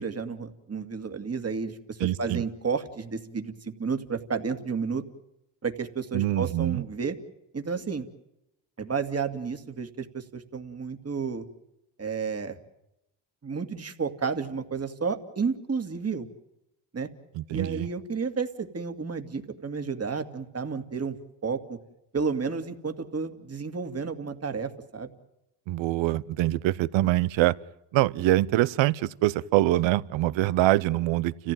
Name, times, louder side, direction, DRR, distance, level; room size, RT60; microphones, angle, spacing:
voice 1, 0.0-5.0 5.6-7.2 7.5-8.1 8.8-11.5 12.0-12.6 13.4-16.3 16.9-17.1 17.5-21.2 21.4-21.8 22.1-25.1, right 5 dB, 35° right, 2.3 m, -31 dB
voice 2, 2.0-2.4 6.1-6.8 17.4-17.9 25.7-27.5 27.9-31.5, right 15 dB, 80° right, 0.8 m, -24 dB
30.0 x 15.0 x 9.2 m
supercardioid pair, 65°, 45 cm